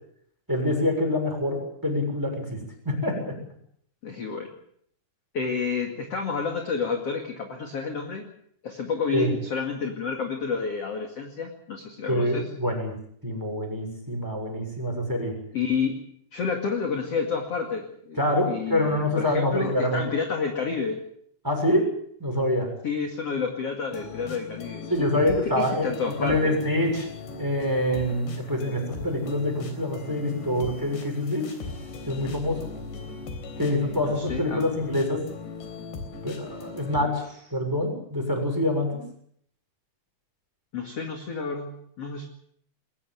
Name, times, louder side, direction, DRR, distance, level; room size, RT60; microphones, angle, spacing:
voice 1, 0.5-3.4 9.1-9.3 12.1-12.9 13.2-15.4 18.2-20.0 21.4-21.9 22.2-22.7 24.9-27.1 27.4-31.5 32.1-32.7 33.6-35.2 36.2-37.2 37.5-39.0, left 1 dB, 5° right, 3 dB, 6.3 m, -26 dB
voice 2, 4.0-4.5 5.3-8.3 8.6-12.4 15.5-16.0 16.3-18.2 18.5-21.0 22.8-26.6 33.6-34.6 40.7-42.3, left 5 dB, 45° left, 3 dB, 2.7 m, -30 dB
sound 1, 23.9-37.0, left 4 dB, 85° left, 5.8 m, -39 dB
21.5 x 18.0 x 7.7 m, 0.68 s
omnidirectional pair, 4.9 m